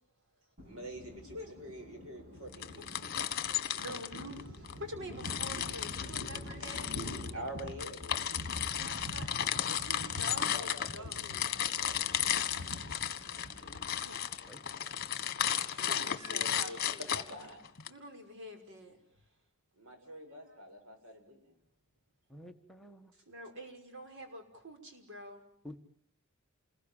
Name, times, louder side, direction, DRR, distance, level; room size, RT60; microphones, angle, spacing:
Thunder, 0.6-15.4, left 1 dB, 40° right, 6.9 m, -46 dB
voice 1, 0.7-3.8 6.6-6.8 7.3-8.2 10.5-12.7 15.7-17.6 19.8-21.5, equal, 75° right, 5 dB, 7.6 m, -47 dB
sound 1, 2.5-4.8 5.2-17.9, left 10 dB, 50° left, 1.5 m, -34 dB
voice 2, 3.6-7.1 8.8-9.4 9.7-11.2 13.1-17.1 17.9-19.0 23.3-25.4, equal, 60° right, 5 dB, 5.8 m, -48 dB
voice 3, 22.3-23.1 25.6-25.8, equal, ahead, 4 dB, 1.6 m, -49 dB
28.5 x 21.5 x 9.1 m, 0.66 s
head